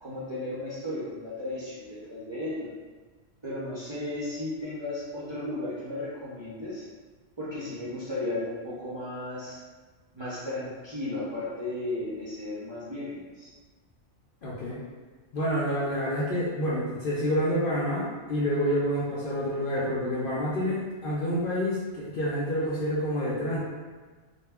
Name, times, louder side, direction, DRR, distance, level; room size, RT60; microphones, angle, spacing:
voice 1, 0.0-2.7 3.4-6.9 7.4-9.6 10.1-13.5, left 1 dB, 35° right, -11 dB, 0.5 m, -35 dB
voice 2, 14.4-14.8 15.3-23.6, equal, 60° left, -7 dB, 0.6 m, -28 dB
2.2 x 2.1 x 3.4 m, 1.4 s
omnidirectional pair, 1.2 m